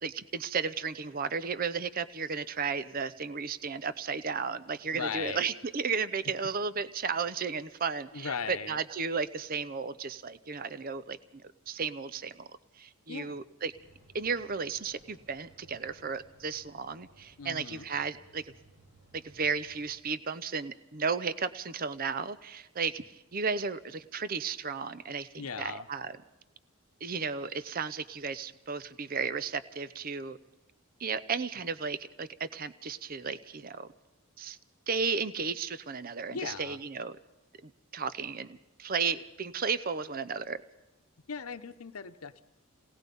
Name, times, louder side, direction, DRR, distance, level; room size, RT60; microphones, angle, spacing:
voice 1, 0.0-12.5 12.8-13.7 14.1-18.5 19.1-26.2 27.0-30.4 31.0-33.9 34.4-34.6 34.9-37.2 37.6-40.6, right 5 dB, 40° right, 15 dB, 0.7 m, -34 dB
voice 2, 4.9-5.4 6.4-6.5 8.1-8.8 13.1-13.4 17.4-17.9 25.4-25.8 36.3-36.8 41.3-42.4, left 6 dB, 90° left, 9 dB, 0.9 m, -38 dB
sound 1, 13.7-19.9, right 1 dB, 90° right, 7.2 m, -60 dB
28.0 x 18.5 x 5.4 m, 0.97 s
head